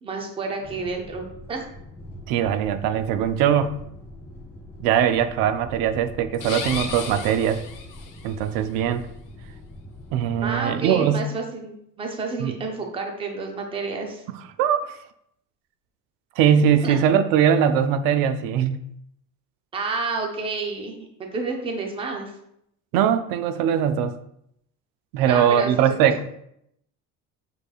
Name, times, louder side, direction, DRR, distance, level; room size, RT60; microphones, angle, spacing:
voice 1, 0.0-1.6 10.4-14.2 16.8-17.0 19.7-20.9 21.2-22.3 25.3-26.1, right 4 dB, 15° right, 2 dB, 0.5 m, -30 dB
sound 1, 0.6-10.7, left 1 dB, 10° left, 1.5 m, -42 dB
voice 2, 2.3-3.8 4.8-7.6 8.2-9.0 10.1-11.3 12.4-12.5 14.3-15.0 16.4-18.8 22.9-24.1 25.1-26.2, right 9 dB, 80° right, 10 dB, 0.5 m, -21 dB
sound 2, 6.3-8.3, left 5 dB, 65° left, 0.8 m, -34 dB
6.7 x 3.2 x 2.3 m, 0.74 s
cardioid pair, 165°, 34 cm